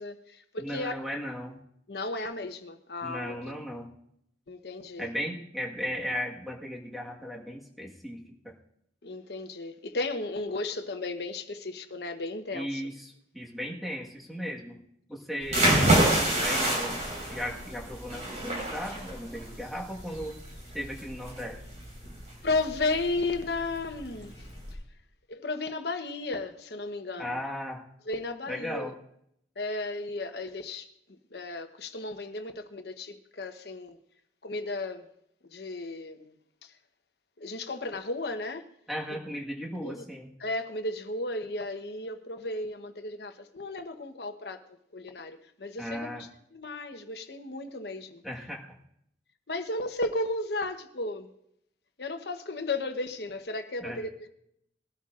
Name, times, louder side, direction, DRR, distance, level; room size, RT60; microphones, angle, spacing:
voice 1, 0.0-0.9 1.9-3.4 4.5-5.1 9.0-12.8 22.4-24.5 25.3-27.4 28.1-28.9 29.6-34.0 34.4-35.1 35.5-36.3 36.6-36.7 37.4-38.6 39.8-40.0 40.4-44.6 44.9-48.2 49.5-51.3 52.0-54.3, left 2 dB, 65° left, 1.0 m, -34 dB
voice 2, 0.6-1.6 3.0-3.9 5.0-8.5 12.5-14.8 15.1-17.0 17.3-20.3 20.7-21.6 27.2-27.8 28.5-28.9 38.9-40.3 45.8-46.2 48.2-48.6 53.8-54.0, equal, ahead, 1.5 m, -36 dB
sound 1, 15.4-24.7, right 1 dB, 45° right, 4.7 m, -28 dB
21.0 x 12.5 x 2.5 m
head